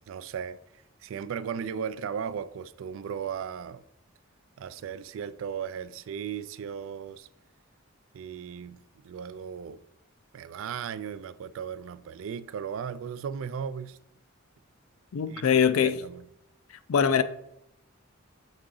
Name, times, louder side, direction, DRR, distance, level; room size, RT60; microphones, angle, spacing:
voice 1, 0.1-0.6 1.0-3.8 4.6-7.3 8.1-9.8 10.3-14.0 15.3-16.3, right 7 dB, 70° right, 0.3 m, -36 dB
voice 2, 15.1-16.0 16.9-17.2, left 7 dB, 90° left, 0.4 m, -22 dB
7.2 x 3.8 x 3.8 m
head